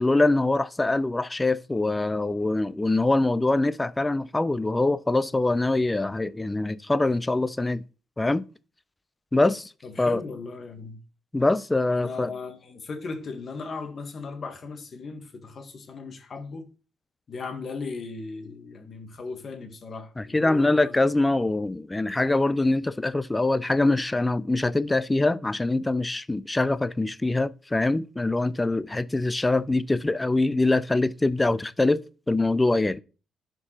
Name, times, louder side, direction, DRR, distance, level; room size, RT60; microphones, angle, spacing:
voice 1, 0.0-7.8 8.2-8.4 9.3-9.7 10.0-10.2 11.3-12.3 20.2-33.0, left 2 dB, 15° left, 0.4 m, -24 dB
voice 2, 9.8-11.0 11.9-16.7 17.3-21.0, left 4 dB, 45° left, 1.4 m, -37 dB
11.0 x 4.5 x 3.0 m
cardioid pair, 90°, 0 cm